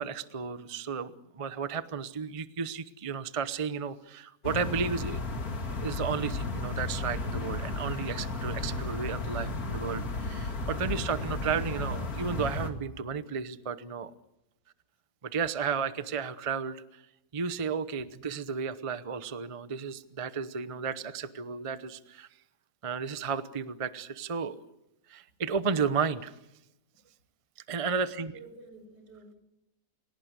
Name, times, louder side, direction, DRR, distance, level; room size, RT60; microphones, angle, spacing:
voice 1, 0.0-5.2 5.7-14.1 15.2-16.8 17.3-22.3 22.8-24.7 25.1-26.3 27.7-28.3, right 6 dB, 25° right, 13 dB, 0.7 m, -33 dB
sound 1, 4.4-12.7, left 2 dB, 60° left, 2.7 m, -34 dB
voice 2, 27.9-29.4, right 3 dB, 85° right, 6 dB, 6.1 m, -49 dB
30.0 x 18.0 x 8.2 m, 0.90 s
omnidirectional pair, 1.8 m